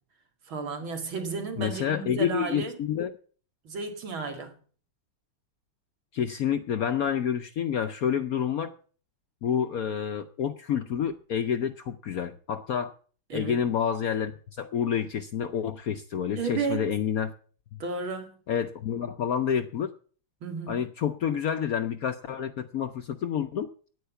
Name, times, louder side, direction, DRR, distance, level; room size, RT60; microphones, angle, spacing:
voice 1, 0.5-2.8 3.6-4.5 13.3-13.6 16.4-16.8 17.8-18.4 20.4-20.8, right 4 dB, 80° right, 2.9 m, -33 dB
voice 2, 1.6-3.1 6.1-8.7 9.4-12.9 13.3-17.3 17.7-17.8 18.5-19.9 20.7-23.7, left 8 dB, 65° left, 0.9 m, -28 dB
9.3 x 9.2 x 8.1 m
omnidirectional pair, 2.2 m